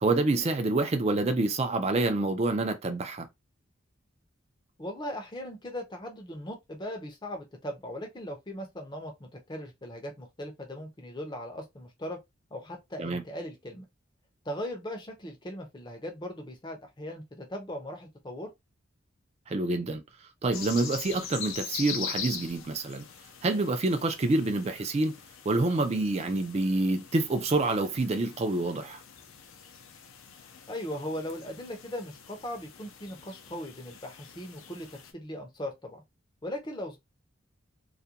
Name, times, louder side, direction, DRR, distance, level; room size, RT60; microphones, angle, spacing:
voice 1, 0.0-3.3 13.0-13.2 19.5-20.0 20.4-23.1 23.4-25.2 25.5-29.0, right 2 dB, 30° right, 0.4 m, -27 dB
voice 2, 4.8-12.2 12.5-13.9 14.4-18.5 30.7-36.0 36.4-37.0, left 1 dB, 20° left, 0.6 m, -39 dB
sound 1, 20.5-35.1, left 7 dB, 75° left, 0.5 m, -43 dB
2.4 x 2.2 x 2.7 m
head